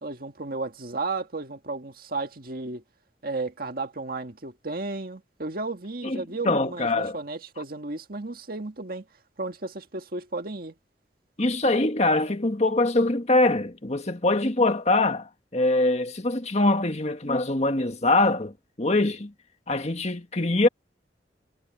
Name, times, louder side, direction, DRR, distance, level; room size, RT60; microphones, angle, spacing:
voice 1, 0.0-2.8 3.2-9.0 9.4-10.7, right 3 dB, 55° right, 1.8 m, -33 dB
voice 2, 6.0-7.2 11.4-19.3 19.7-20.7, left 2 dB, 35° left, 1.7 m, -23 dB
head